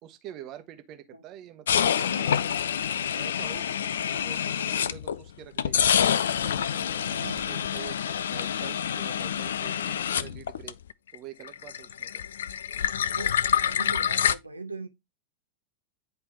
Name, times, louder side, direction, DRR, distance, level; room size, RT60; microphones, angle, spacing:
voice 1, 0.0-2.6 3.1-5.8 6.4-10.8 11.1-12.2, right 11 dB, 35° right, 1.0 m, -46 dB
sound 1, 1.7-5.2 5.6-11.2 11.4-14.3, left 8 dB, 65° left, 0.3 m, -27 dB
voice 2, 7.0-7.7 13.0-14.9, right 3 dB, 85° right, 0.5 m, -41 dB
9.9 x 3.3 x 2.9 m
figure-of-eight pair, 90°, 0 cm